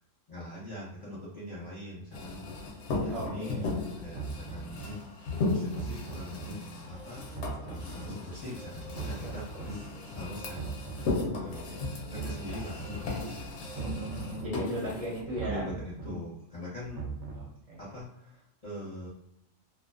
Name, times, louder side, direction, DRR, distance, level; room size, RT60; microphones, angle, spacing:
voice 1, 0.3-2.5 3.0-3.6 4.0-4.8 5.1-7.2 7.6-9.8 10.1-10.8 11.4-13.1 15.4-17.0 17.8-19.1, left 1 dB, 30° left, -8 dB, 0.9 m, -42 dB
sound 1, 2.1-15.2, left 3 dB, 65° left, 0.9 m, -36 dB
voice 2, 3.1-3.7 9.2-9.3 13.8-15.6 17.3-17.8, right 1 dB, 35° right, -4 dB, 0.8 m, -36 dB
sound 2, 3.2-3.3 4.0-4.9 5.6-6.5 7.2-8.1 8.8-9.7 10.4-11.3 12.0-12.9 13.6-14.5 15.2-16.1 16.8-17.5, right 4 dB, 70° right, 0.8 m, -40 dB
sound 3, 6.8-14.2, right 1 dB, 85° right, 1.1 m, -49 dB
2.5 x 2.2 x 2.4 m, 0.79 s
omnidirectional pair, 1.4 m